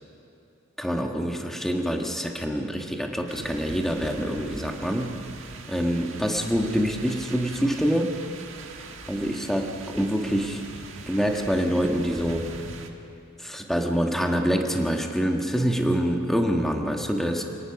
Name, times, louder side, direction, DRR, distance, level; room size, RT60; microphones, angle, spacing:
voice 1, 0.8-5.2 5.7-8.2 9.1-10.6 11.1-12.5 13.4-17.4, equal, ahead, 2 dB, 1.5 m, -26 dB
sound 1, 3.3-12.9, right 3 dB, 70° right, 1.7 m, -41 dB
28.0 x 18.0 x 5.9 m, 2.7 s
head